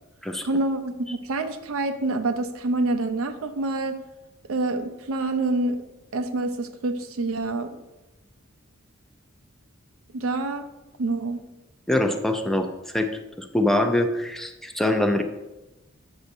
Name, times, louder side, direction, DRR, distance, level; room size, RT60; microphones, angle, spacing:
voice 1, 0.4-4.0 4.5-5.8 6.1-7.8 10.1-10.7 11.0-11.4, right 2 dB, 85° right, 8 dB, 0.6 m, -27 dB
voice 2, 11.9-13.1 13.4-15.2, left 1 dB, ahead, 6 dB, 0.4 m, -24 dB
8.0 x 6.9 x 2.7 m, 1.0 s
head